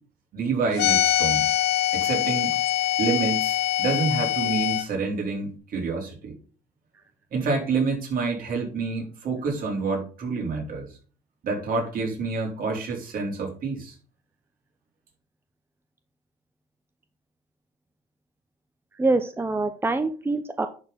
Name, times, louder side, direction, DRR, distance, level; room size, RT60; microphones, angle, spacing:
voice 1, 0.3-1.5 1.9-2.6 3.0-6.3 7.3-10.9 11.4-13.9, right 4 dB, 60° right, 0 dB, 4.1 m, -28 dB
sound 1, 0.8-4.8, left 13 dB, 80° left, 1.9 m, -23 dB
voice 2, 18.9-20.7, right 3 dB, 15° right, 9 dB, 0.7 m, -25 dB
10.5 x 4.4 x 5.1 m, 0.38 s
cardioid pair, 110°, 17 cm